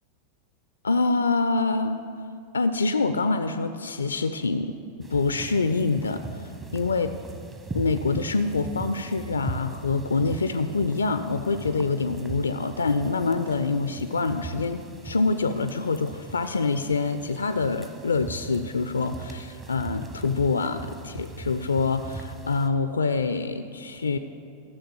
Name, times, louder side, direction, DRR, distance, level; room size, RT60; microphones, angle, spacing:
voice 1, 0.8-2.0 2.5-4.8 5.1-6.4 6.7-7.1 7.7-24.2, left 3 dB, 75° left, 10 dB, 0.4 m, -26 dB
sound 1, 5.0-22.7, right 4 dB, 20° right, 1.1 m, -40 dB
12.5 x 6.8 x 7.1 m, 2.6 s
figure-of-eight pair, 90°, 0 cm